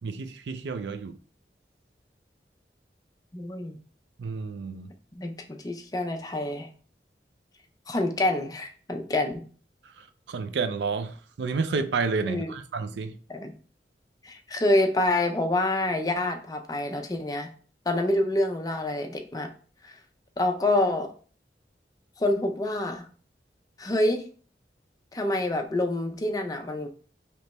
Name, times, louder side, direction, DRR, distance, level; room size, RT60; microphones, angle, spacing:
voice 1, 0.0-1.2 4.2-4.9 10.0-13.2, right 4 dB, 85° right, 0.4 m, -30 dB
voice 2, 3.3-3.8 5.2-6.7 7.9-9.4 12.3-12.5 13.3-13.5 14.2-17.5 17.9-19.5 19.8-19.9 20.4-21.1 22.2-23.1 23.8-24.2 25.1-26.9, left 1 dB, 20° left, 0.5 m, -27 dB
3.3 x 2.9 x 4.1 m
head